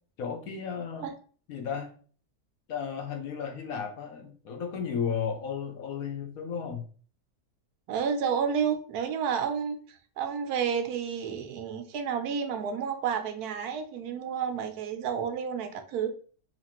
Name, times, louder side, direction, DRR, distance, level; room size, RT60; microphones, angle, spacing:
voice 1, 0.2-1.1 1.5-1.9 2.7-6.8, left 7 dB, 65° left, 3 dB, 1.2 m, -34 dB
voice 2, 7.9-16.1, right 7 dB, 80° right, 7 dB, 1.1 m, -30 dB
4.0 x 2.9 x 2.9 m, 0.42 s
omnidirectional pair, 1.6 m